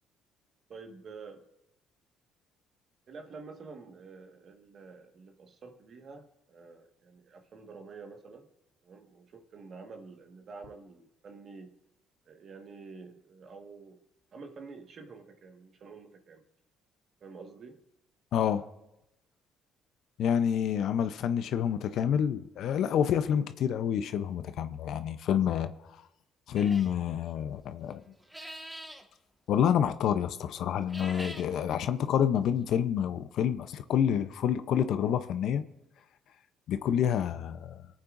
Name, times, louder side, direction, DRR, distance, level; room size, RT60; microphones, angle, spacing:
voice 1, 0.7-1.5 3.1-8.5 8.8-11.7 12.2-14.0 14.3-16.4 17.2-17.8, right 4 dB, 55° right, 4 dB, 1.6 m, -48 dB
voice 2, 18.3-18.6 20.2-25.7 26.5-28.0 29.5-35.6 36.7-37.8, left 9 dB, 70° left, 11 dB, 0.7 m, -28 dB
sound 1, 26.5-27.0 28.2-29.0 30.8-31.5, equal, 10° right, 1.6 m, -44 dB
23.0 x 8.7 x 2.6 m, 0.89 s
supercardioid pair, 75°, 0 cm